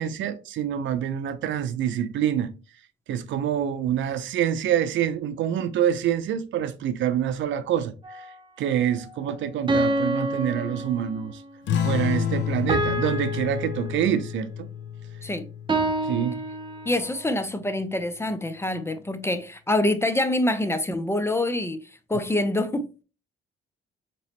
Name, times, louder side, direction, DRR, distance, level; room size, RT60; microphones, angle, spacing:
voice 1, 0.0-2.5 3.1-11.4 11.8-14.7 16.0-16.4, right 10 dB, 70° right, 0.5 m, -26 dB
sound 1, 8.0-8.2 9.7-11.4 12.7-14.4 15.7-17.2, right 1 dB, 25° right, 0.7 m, -28 dB
sound 2, 11.7-16.7, left 9 dB, 70° left, 0.6 m, -30 dB
voice 2, 16.9-21.8 22.1-23.0, left 1 dB, 15° left, 0.4 m, -26 dB
4.0 x 3.0 x 2.8 m
cardioid pair, 90°, 20 cm